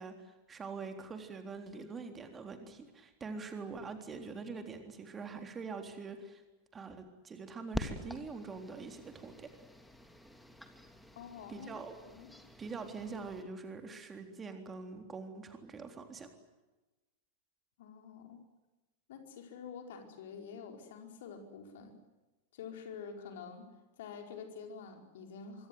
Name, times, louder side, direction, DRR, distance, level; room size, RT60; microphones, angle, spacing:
voice 1, 0.0-6.4 6.7-9.5 11.5-12.0 12.6-16.3, right 4 dB, 20° right, 6 dB, 3.7 m, -44 dB
sound 1, 7.7-13.4, left 1 dB, ahead, 2.8 m, -46 dB
voice 2, 11.1-11.7 12.1-12.3 17.8-18.4 19.1-22.0 22.5-23.7 24.0-25.7, left 6 dB, 55° left, 4 dB, 4.9 m, -47 dB
25.0 x 24.5 x 7.9 m, 1.1 s
figure-of-eight pair, 90°, 0 cm